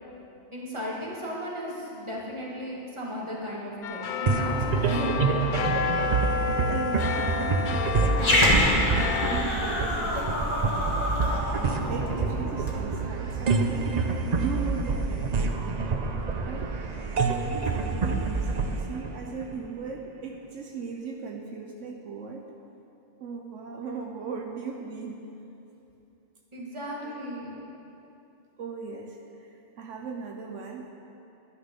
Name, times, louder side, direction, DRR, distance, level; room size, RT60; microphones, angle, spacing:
voice 1, 0.5-5.9 26.5-27.5, equal, 25° right, -4 dB, 2.0 m, -35 dB
sound 1, 3.8-9.4, left 6 dB, 55° left, 0.6 m, -30 dB
sound 2, 4.3-19.9, right 4 dB, 45° right, 0.6 m, -27 dB
voice 2, 6.7-13.9 14.3-16.0 16.5-16.7 17.2-22.5 23.2-25.2 27.0-27.2 28.6-30.9, right 5 dB, 75° right, 2 dB, 1.1 m, -38 dB
Growling, 8.1-12.8, left 1 dB, 25° left, 1.4 m, -26 dB
11.5 x 9.9 x 5.4 m, 2.9 s
omnidirectional pair, 1.3 m